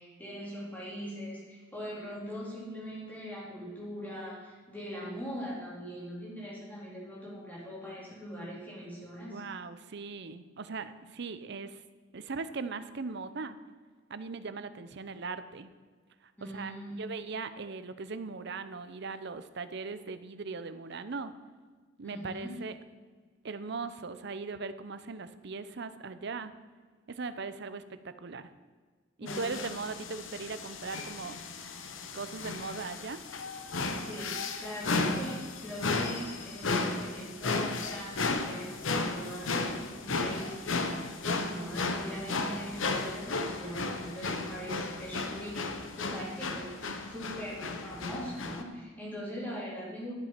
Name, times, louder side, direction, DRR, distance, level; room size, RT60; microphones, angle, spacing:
voice 1, 0.0-9.4 16.4-17.0 22.0-22.5 29.2-29.4 33.9-46.7 47.1-50.1, equal, 10° left, -6 dB, 3.6 m, -41 dB
voice 2, 9.3-11.8 12.1-13.6 14.1-15.7 16.2-16.7 17.0-21.3 22.0-22.8 23.4-26.5 27.1-28.5 29.2-31.4 32.1-33.2, right 4 dB, 60° right, 12 dB, 0.6 m, -39 dB
sound 1, 29.3-48.6, left 3 dB, 80° left, 1.0 m, -34 dB
12.0 x 7.6 x 5.9 m, 1.5 s
head